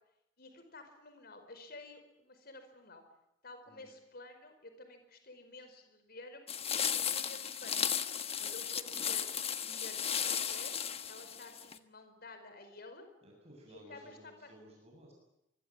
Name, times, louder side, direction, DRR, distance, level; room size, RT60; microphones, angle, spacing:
voice 1, 0.4-3.0 3.4-6.4 6.9-8.0 8.4-9.3 9.6-10.8 11.1-13.1 13.7-14.5, left 2 dB, 55° left, 7 dB, 5.0 m, -52 dB
sound 1, 6.5-11.8, left 8 dB, 30° left, 1.4 m, -35 dB
voice 2, 13.2-15.1, right 1 dB, 35° right, -1 dB, 7.7 m, -56 dB
25.5 x 21.5 x 8.9 m, 0.85 s
head